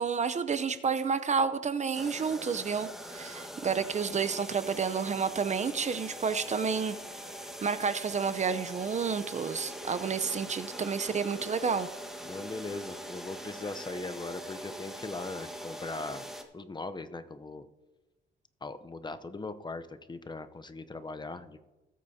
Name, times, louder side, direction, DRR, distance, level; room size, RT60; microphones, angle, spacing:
voice 1, 0.0-7.0 7.6-11.9, right 6 dB, 35° right, 12 dB, 0.7 m, -30 dB
sound 1, 1.9-16.4, equal, ahead, 1.5 m, -43 dB
voice 2, 12.2-17.7 18.6-21.6, left 3 dB, 20° left, 10 dB, 0.7 m, -40 dB
19.0 x 8.4 x 2.8 m, 1.1 s
cardioid pair, 90°, 20 cm